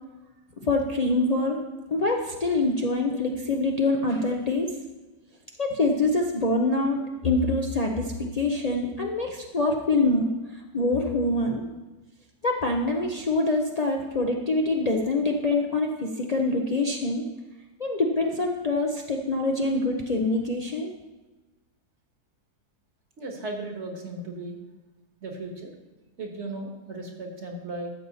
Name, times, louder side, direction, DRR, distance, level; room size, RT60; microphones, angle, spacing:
voice 1, 0.6-1.6 1.9-4.7 5.6-10.3 10.5-11.7 12.4-17.3 17.8-20.9, left 2 dB, 85° left, 0 dB, 0.3 m, -25 dB
voice 2, 23.2-24.6 25.2-25.7 26.2-27.9, right 2 dB, 40° right, 2 dB, 1.6 m, -36 dB
13.0 x 7.1 x 4.1 m, 1.2 s
omnidirectional pair, 1.9 m